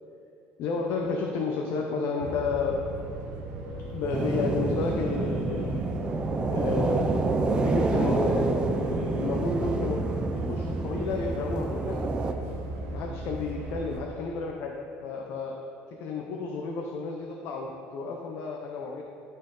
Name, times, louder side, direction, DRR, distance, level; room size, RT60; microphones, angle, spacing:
voice 1, 0.6-2.8 3.9-5.9 6.5-7.3 7.6-12.1 12.9-14.8 15.0-15.6 16.0-19.0, left 4 dB, 60° left, 1 dB, 0.7 m, -31 dB
sound 1, 2.2-14.0, right 1 dB, 65° right, 1.0 m, -36 dB
sound 2, 4.1-12.3, right 3 dB, 20° right, 0.4 m, -28 dB
12.5 x 4.5 x 3.8 m, 2.6 s
cardioid pair, 150°, 4 cm